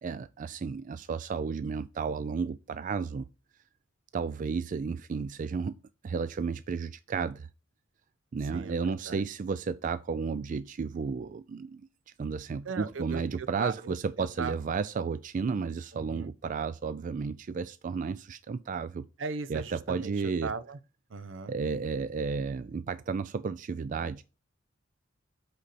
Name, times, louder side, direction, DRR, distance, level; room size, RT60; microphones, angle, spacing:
voice 1, 0.0-3.3 4.1-7.5 8.3-11.9 12.2-19.1 19.5-20.5 21.5-24.2, right 5 dB, 40° right, 0.3 m, -33 dB
voice 2, 8.5-9.2 12.6-14.5 15.9-16.3 19.2-20.8 21.1-21.5, right 4 dB, 75° right, 0.7 m, -38 dB
8.2 x 4.1 x 4.1 m
head